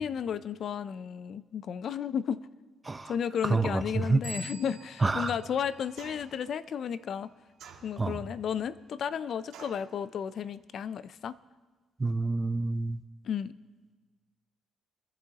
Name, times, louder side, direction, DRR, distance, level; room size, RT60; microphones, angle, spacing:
voice 1, 0.0-2.4 3.1-7.3 7.8-11.4 13.2-13.5, left 8 dB, 60° left, 15 dB, 0.4 m, -33 dB
voice 2, 3.4-4.2 5.0-5.3 8.0-8.2 12.0-13.0, right 3 dB, 25° right, 11 dB, 0.6 m, -28 dB
sound 1, 4.2-6.7, right 2 dB, 10° left, 3.1 m, -46 dB
sound 2, 6.0-6.4 7.6-8.3 9.5-9.9, right 7 dB, 85° right, 1.6 m, -49 dB
25.5 x 10.5 x 2.9 m, 1.3 s
cardioid pair, 90°, 0 cm